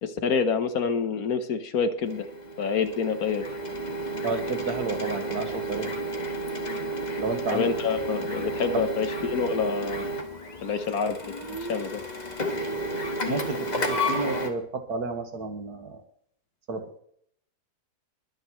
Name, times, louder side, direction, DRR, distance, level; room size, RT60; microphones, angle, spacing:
voice 1, 0.0-2.3 2.6-3.4 7.5-10.1 10.6-12.0, left 5 dB, 65° left, 9 dB, 1.5 m, -27 dB
Printer, 2.0-14.5, right 1 dB, 25° left, 1.6 m, -32 dB
voice 2, 4.2-5.9 7.2-7.7 8.7-8.8 13.3-16.0 16.7-17.0, right 3 dB, 70° right, 5 dB, 2.2 m, -31 dB
22.5 x 9.6 x 3.2 m, 0.63 s
omnidirectional pair, 1.7 m